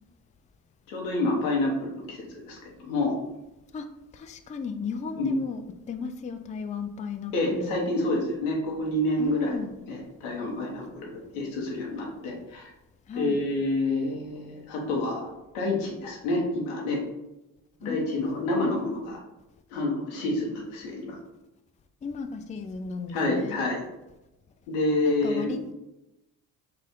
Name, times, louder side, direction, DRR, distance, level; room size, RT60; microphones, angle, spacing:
voice 1, 0.9-3.1 5.1-5.3 7.3-9.5 9.9-12.7 13.2-15.3 15.5-17.0 17.8-19.2 19.7-21.2 23.1-23.8 24.7-25.5, left 2 dB, 85° left, -1 dB, 1.2 m, -28 dB
voice 2, 4.1-5.6 5.9-7.8 9.2-9.8 13.1-13.4 17.8-18.9 22.0-23.6 25.0-25.7, left 5 dB, 20° left, 7 dB, 0.4 m, -35 dB
4.4 x 2.5 x 3.6 m, 0.97 s
hypercardioid pair, 55°, 40 cm